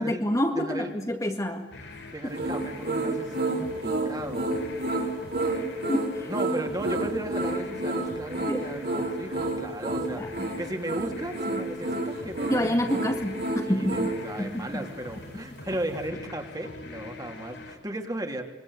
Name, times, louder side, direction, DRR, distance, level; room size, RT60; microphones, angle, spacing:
voice 1, 0.0-2.0 5.9-6.3 8.5-8.7 10.0-10.5 12.5-14.8, equal, 20° left, 3 dB, 2.1 m, -28 dB
voice 2, 0.6-0.9 2.1-4.5 6.2-13.2 13.6-18.4, right 1 dB, 20° right, 3 dB, 3.1 m, -36 dB
sound 1, 1.7-17.8, left 2 dB, 80° left, 4.9 m, -44 dB
sound 2, 2.3-14.2, right 2 dB, 60° right, 5.3 m, -29 dB
26.5 x 23.0 x 8.1 m, 1.1 s
head